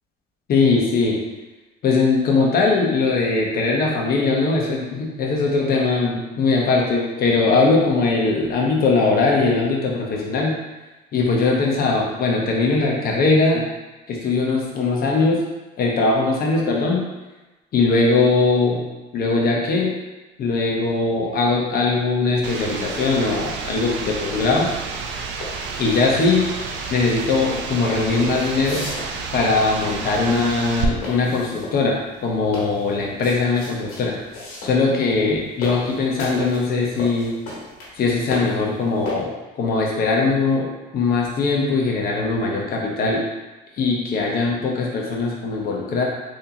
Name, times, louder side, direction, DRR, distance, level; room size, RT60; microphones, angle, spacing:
voice 1, 0.5-1.2 1.8-10.5 11.1-13.7 14.1-15.4 15.8-17.0 17.7-18.8 19.1-19.9 20.4-24.7 25.8-26.5 26.9-28.8 29.3-31.9 32.2-34.2 34.6-37.3 38.0-40.7 40.9-43.3 43.8-46.0, left 3 dB, 50° left, -2 dB, 0.9 m, -20 dB
sound 1, 22.4-30.9, right 5 dB, 65° right, 0.5 m, -30 dB
sound 2, 25.3-39.1, left 2 dB, 90° left, 1.4 m, -35 dB
3.7 x 2.8 x 2.8 m, 1.1 s
supercardioid pair, 100°, 20 cm